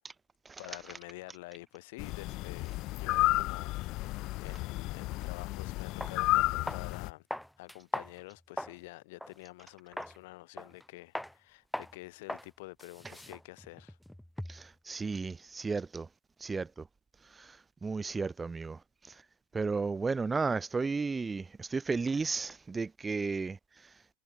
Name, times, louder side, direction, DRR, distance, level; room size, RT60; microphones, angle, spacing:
voice 1, 0.6-7.3 7.6-14.0, left 22 dB, 70° left, 3.4 m, -48 dB
sound 1, 2.0-7.1, left 20 dB, 50° left, 0.5 m, -32 dB
sound 2, 6.0-6.2 6.7-6.9 7.3-8.8 9.2-9.4 10.0-10.2 10.6-10.9 11.2-11.3 11.7-12.0 12.3-12.5 12.8-14.7, equal, ahead, 2.2 m, -40 dB
voice 2, 14.5-16.1 16.4-16.9 17.3-18.8 19.1-19.2 19.5-23.6, right 4 dB, 15° right, 1.7 m, -34 dB
supercardioid pair, 135°, 0 cm